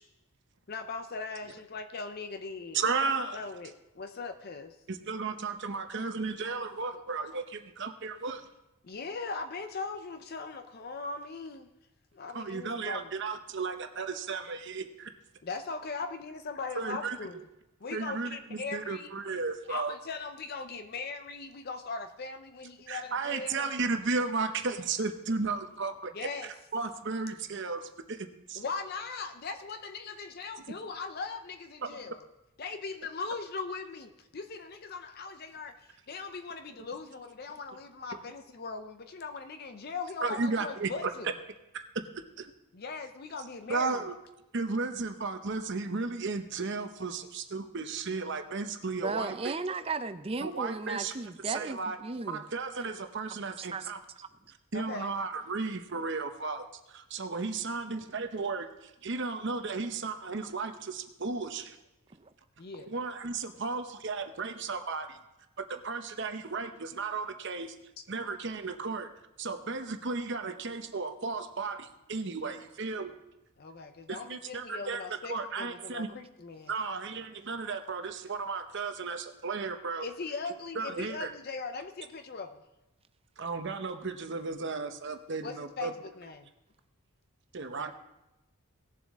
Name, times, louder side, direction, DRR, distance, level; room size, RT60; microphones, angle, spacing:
voice 1, 0.7-2.8 3.3-4.8 8.8-11.7 12.1-13.1 15.4-17.4 17.8-19.1 19.7-23.7 26.1-26.5 28.6-32.2 32.6-41.3 42.7-44.0 54.7-55.1 62.6-62.9 73.6-76.7 80.0-82.6 85.4-86.5, left 4 dB, 45° left, 8 dB, 0.5 m, -39 dB
voice 2, 2.7-3.4 4.9-8.5 12.3-15.1 16.7-17.2 17.9-19.9 22.9-26.1 26.4-28.6 31.8-32.1 40.2-41.1 41.7-41.8 42.4-42.5 43.7-44.1 44.5-49.5 50.4-51.1 51.5-52.0 52.3-54.0 54.7-61.8 62.9-65.2 65.6-67.8 68.1-69.1 69.4-73.1 74.1-75.0 75.3-76.1 76.7-80.1 80.8-81.3 83.4-85.9 87.5-87.9, right 4 dB, 55° right, 7 dB, 0.8 m, -34 dB
voice 3, 49.0-52.4 53.5-53.9 62.2-62.3, right 3 dB, 25° right, 11 dB, 0.5 m, -35 dB
18.5 x 7.3 x 3.6 m, 0.94 s
head